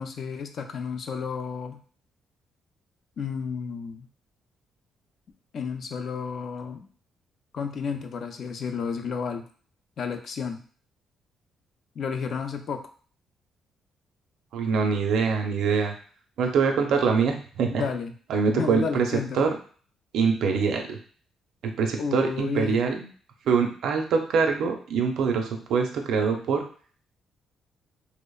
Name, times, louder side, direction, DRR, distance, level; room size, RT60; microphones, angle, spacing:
voice 1, 0.0-1.8 3.2-4.1 5.5-6.9 7.5-9.4 10.0-10.6 12.0-12.9 17.7-18.1 18.5-19.4 22.0-22.8, left 6 dB, 60° left, 6 dB, 0.3 m, -32 dB
voice 2, 14.5-15.9 16.4-17.8 18.3-19.5 20.1-21.0 21.6-23.1 23.5-26.7, right 5 dB, 75° right, 3 dB, 0.4 m, -24 dB
2.8 x 2.0 x 2.3 m, 0.43 s
cardioid pair, 90°, 0 cm